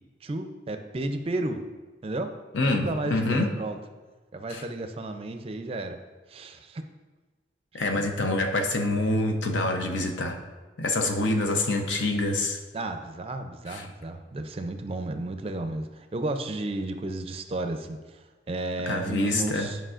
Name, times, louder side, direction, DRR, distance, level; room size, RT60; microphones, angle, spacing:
voice 1, 0.2-1.6 2.0-2.3 2.6-3.8 4.3-6.0 6.3-6.9 7.7-8.3 12.7-19.8, right 2 dB, 30° right, 7 dB, 0.4 m, -33 dB
voice 2, 2.5-3.5 4.5-4.6 7.7-10.4 10.8-12.6 13.7-13.8 18.9-19.7, left 2 dB, 85° left, 4 dB, 0.7 m, -26 dB
9.9 x 5.3 x 2.5 m, 1.3 s
head